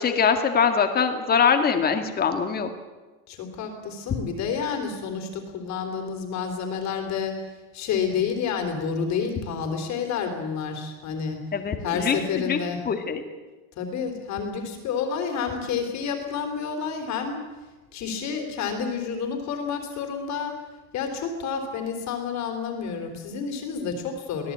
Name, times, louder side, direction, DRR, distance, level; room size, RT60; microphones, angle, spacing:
voice 1, 0.0-2.7 11.5-12.2 12.5-12.6 12.9-13.2, left 6 dB, 20° left, 6 dB, 2.0 m, -22 dB
voice 2, 3.3-7.4 7.7-11.4 11.8-12.8 13.8-17.4 17.9-20.6 20.9-24.5, left 6 dB, 35° left, 4 dB, 3.4 m, -29 dB
24.0 x 17.5 x 8.6 m, 1.2 s
cardioid pair, 175°, 44 cm